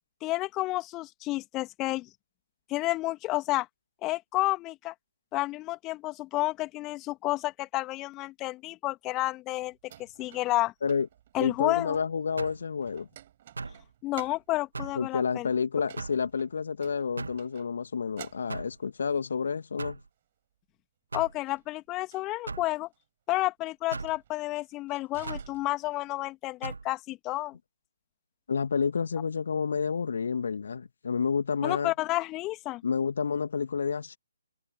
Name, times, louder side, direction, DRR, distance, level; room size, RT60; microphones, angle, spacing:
voice 1, 0.2-2.1 2.7-3.7 4.0-4.9 5.3-9.7 10.2-10.7 11.3-12.0 14.0-15.5 21.1-22.9 23.3-27.5 31.6-32.8, left 18 dB, 20° left, 2.5 m, -30 dB
sound 1, 9.6-12.5 12.8-14.6 15.8-17.8 18.1-19.0 21.2-22.2 22.8-23.0 23.9-26.2, right 12 dB, 35° right, 7.2 m, -52 dB
voice 2, 11.4-13.1 15.0-20.0 28.5-31.9 32.8-34.2, left 6 dB, 55° left, 2.0 m, -29 dB
sound 2, 12.4-12.7 13.6-13.8 14.7-15.0 16.0-16.2 17.2-17.5 18.5-18.8 19.8-20.1 21.1-21.4 22.5-22.7 23.9-24.2 25.3-25.5 26.6-26.9, right 3 dB, 65° right, 1.7 m, -38 dB
figure-of-eight pair, 135°, 0 cm